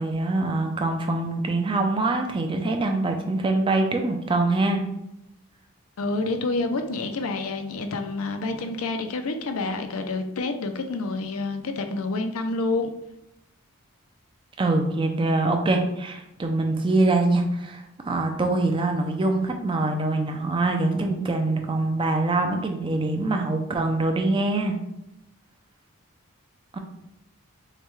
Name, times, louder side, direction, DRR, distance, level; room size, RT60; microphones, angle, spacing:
voice 1, 0.0-4.8 14.6-24.8 26.7-26.8, right 2 dB, 20° right, 4 dB, 0.4 m, -24 dB
voice 2, 6.0-12.9, left 3 dB, 75° left, 6 dB, 0.5 m, -28 dB
6.5 x 2.2 x 3.1 m, 0.86 s
head